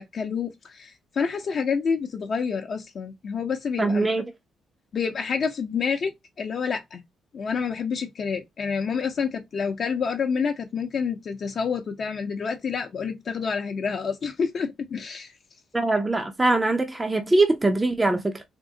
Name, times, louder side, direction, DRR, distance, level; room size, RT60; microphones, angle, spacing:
voice 1, 0.0-4.1 4.9-7.0 7.3-15.3, left 6 dB, 55° left, 0.6 m, -28 dB
voice 2, 3.8-4.2 15.7-18.4, right 2 dB, 15° right, 0.5 m, -22 dB
3.6 x 2.0 x 2.6 m
cardioid pair, 90°, 0 cm